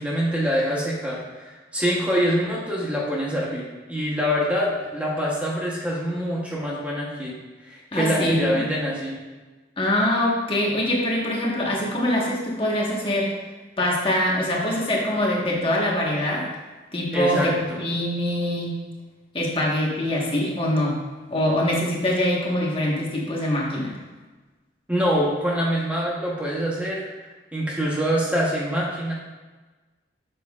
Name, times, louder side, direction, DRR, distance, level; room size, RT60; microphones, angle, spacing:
voice 1, 0.0-7.4 7.6-9.2 17.1-17.8 24.9-27.1 27.5-29.1, equal, 5° right, -5 dB, 1.0 m, -25 dB
voice 2, 7.9-8.6 9.8-13.3 13.8-16.5 16.9-18.8 19.3-21.0 21.3-24.0, left 1 dB, 30° left, -3 dB, 1.4 m, -24 dB
9.0 x 6.5 x 2.4 m, 1.2 s
head